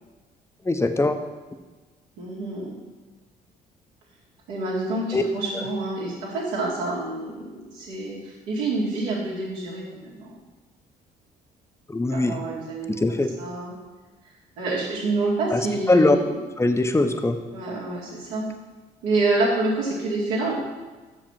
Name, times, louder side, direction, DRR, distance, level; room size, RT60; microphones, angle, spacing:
voice 1, 0.7-1.2 5.1-5.2 5.5-5.6 11.9-12.4 12.9-13.3 15.5-15.6 15.9-16.2 16.6-17.4, left 2 dB, 15° left, 7 dB, 0.7 m, -21 dB
voice 2, 2.2-2.8 4.5-10.4 12.1-13.0 13.4-13.7 14.6-16.4 17.5-18.5 19.0-20.5, right 2 dB, 80° right, -5 dB, 2.2 m, -27 dB
6.6 x 5.2 x 5.6 m, 1.3 s
hypercardioid pair, 55°, 20 cm